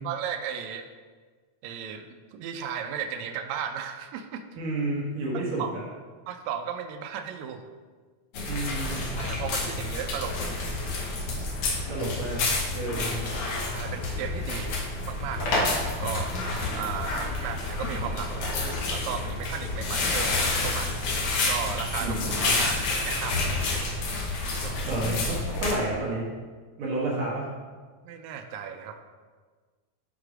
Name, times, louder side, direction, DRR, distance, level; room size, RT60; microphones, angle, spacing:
voice 1, 0.0-0.9 1.6-4.5 5.3-5.7 6.3-7.6 9.2-10.7 13.7-14.8 15.1-16.3 16.7-21.0 21.5-24.0 24.4-25.0 28.0-29.0, right 8 dB, 80° right, 7 dB, 1.8 m, -36 dB
voice 2, 4.6-5.6 8.5-9.0 11.9-12.4 12.7-13.2 22.0-22.6 24.9-26.2 26.8-27.5, right 2 dB, 55° right, -6 dB, 1.8 m, -30 dB
sound 1, 8.3-25.7, left 2 dB, 60° left, 1.6 m, -29 dB
6.4 x 4.5 x 4.8 m, 1.5 s
omnidirectional pair, 3.3 m